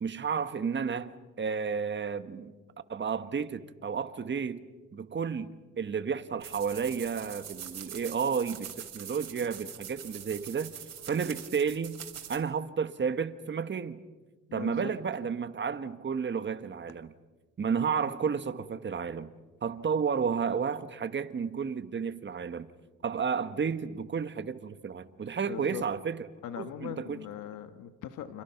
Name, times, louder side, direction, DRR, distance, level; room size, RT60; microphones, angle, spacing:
voice 1, 0.0-2.5 2.9-4.6 4.9-10.7 11.1-12.0 12.3-14.0 14.5-17.1 17.6-19.3 19.6-22.7 23.0-26.3 26.6-27.2, right 6 dB, 40° right, 1.5 m, -32 dB
sound 1, 6.4-12.4, right 9 dB, 60° right, 3.7 m, -44 dB
voice 2, 14.5-14.9 25.4-25.8 26.4-28.4, left 10 dB, 85° left, 1.4 m, -40 dB
29.5 x 27.0 x 5.9 m
cardioid pair, 90°, 30 cm